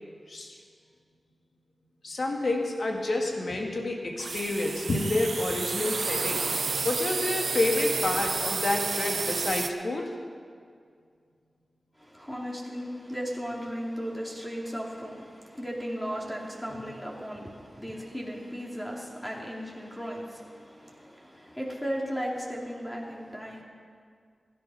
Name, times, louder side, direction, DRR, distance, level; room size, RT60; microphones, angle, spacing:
voice 1, 2.0-10.1, left 2 dB, 65° left, 1 dB, 2.1 m, -29 dB
sound 1, 4.2-9.7, right 4 dB, 70° right, 0.5 m, -31 dB
voice 2, 12.0-23.6, equal, 10° left, -2 dB, 2.9 m, -36 dB
16.0 x 11.0 x 5.7 m, 2.1 s
cardioid pair, 50°, 0 cm